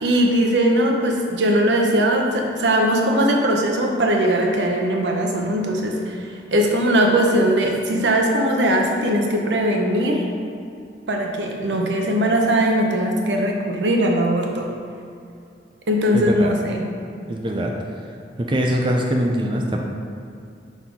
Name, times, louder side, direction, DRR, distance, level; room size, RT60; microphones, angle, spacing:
voice 1, 0.0-10.3 11.1-14.7 15.9-16.8, right 1 dB, 85° right, 1 dB, 0.8 m, -20 dB
voice 2, 16.1-16.5 17.3-18.1 18.4-19.8, equal, 25° right, 0 dB, 0.5 m, -23 dB
5.6 x 4.2 x 4.6 m, 2.4 s
head